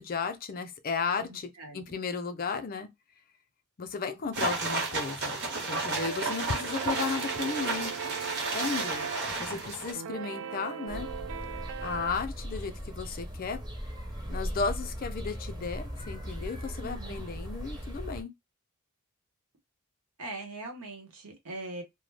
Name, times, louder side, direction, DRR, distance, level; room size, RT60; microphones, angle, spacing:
voice 1, 0.0-1.5 1.7-2.9 3.8-5.4 5.7-7.9 8.5-9.1 9.4-11.1 11.8-13.6 14.3-18.3, left 5 dB, 40° left, 0.4 m, -34 dB
voice 2, 1.2-2.0 16.8-17.2 20.2-21.8, right 2 dB, 90° right, 1.0 m, -42 dB
sound 1, 4.3-9.9, right 3 dB, 50° right, 0.7 m, -32 dB
sound 2, 6.0-12.1, right 7 dB, 70° right, 0.3 m, -39 dB
sound 3, 10.9-18.2, equal, 20° right, 0.5 m, -38 dB
2.2 x 2.0 x 3.2 m
head